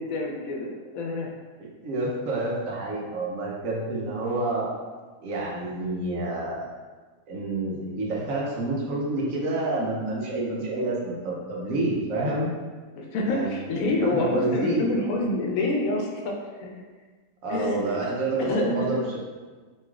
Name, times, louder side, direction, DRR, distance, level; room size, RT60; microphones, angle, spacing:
voice 1, 0.0-1.3 12.9-16.8 17.5-18.1 18.4-18.9, left 2 dB, 90° left, 0 dB, 1.0 m, -27 dB
voice 2, 1.6-4.7 5.2-6.7 7.3-12.5 13.3-14.9 17.4-19.2, right 2 dB, 80° right, -3 dB, 1.1 m, -28 dB
3.1 x 2.9 x 2.3 m, 1.4 s
omnidirectional pair, 1.4 m